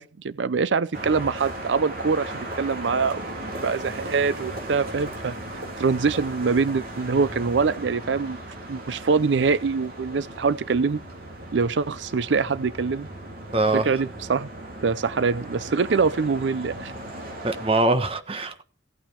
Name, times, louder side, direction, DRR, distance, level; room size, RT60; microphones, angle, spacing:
voice 1, 0.0-3.2 3.6-5.4 5.8-8.4 8.7-11.0 11.5-13.1 13.7-14.5 14.8-16.9, right 5 dB, 80° right, 0.5 m, -24 dB
sound 1, 0.9-17.7, right 1 dB, 55° right, 3.7 m, -37 dB
voice 2, 13.5-13.9 17.4-18.6, right 2 dB, 30° right, 1.2 m, -23 dB
16.5 x 8.9 x 4.6 m
head